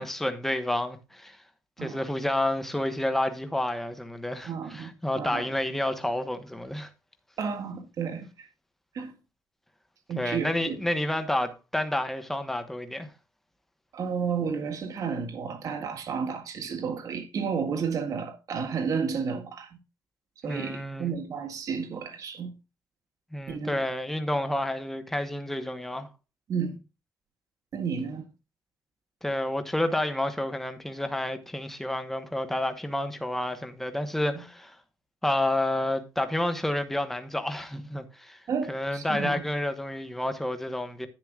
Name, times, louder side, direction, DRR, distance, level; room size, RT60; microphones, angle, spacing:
voice 1, 0.0-1.4 1.8-6.9 10.1-13.1 20.5-21.1 23.3-26.1 29.2-34.8 35.2-38.4 38.7-41.1, left 1 dB, 5° left, 1.1 m, -30 dB
voice 2, 4.5-5.5 7.4-8.5 8.9-9.1 10.1-10.8 13.9-19.8 20.4-22.5 23.5-23.8 26.5-26.8 27.7-28.3 34.3-34.4 38.5-39.4, right 6 dB, 55° right, 1.9 m, -32 dB
10.5 x 9.6 x 2.4 m
cardioid pair, 160°, 7 cm